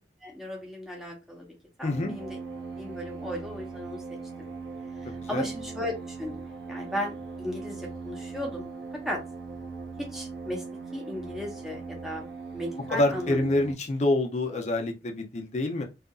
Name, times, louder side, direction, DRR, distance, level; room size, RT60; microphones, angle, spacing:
voice 1, 0.2-1.5 1.8-2.4 2.8-4.0 4.4-4.5 5.1-6.4 6.7-8.7 9.0-9.2 10.0-10.6 10.9-12.2 12.5-13.5 14.5-14.6, equal, ahead, 0.8 m, -36 dB
voice 2, 1.8-2.2 5.2-5.5 12.9-15.8, left 2 dB, 40° left, 0.5 m, -27 dB
sound 1, 1.9-13.7, right 4 dB, 85° right, 0.7 m, -40 dB
2.7 x 2.5 x 2.3 m
head